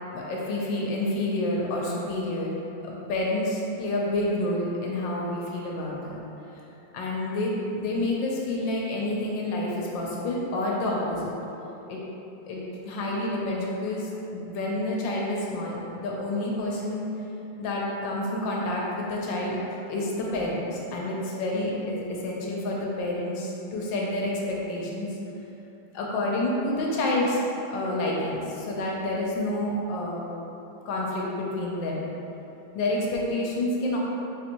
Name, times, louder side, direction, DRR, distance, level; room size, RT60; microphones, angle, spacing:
voice 1, 0.1-2.5 2.8-6.2 6.9-11.3 11.9-12.0 12.5-17.0 17.6-19.6 19.9-25.1 25.9-27.4 27.7-30.3 30.9-32.0 32.7-34.0, left 1 dB, 80° left, -3 dB, 1.3 m, -29 dB
4.5 x 2.8 x 2.6 m, 3.0 s
omnidirectional pair, 2.1 m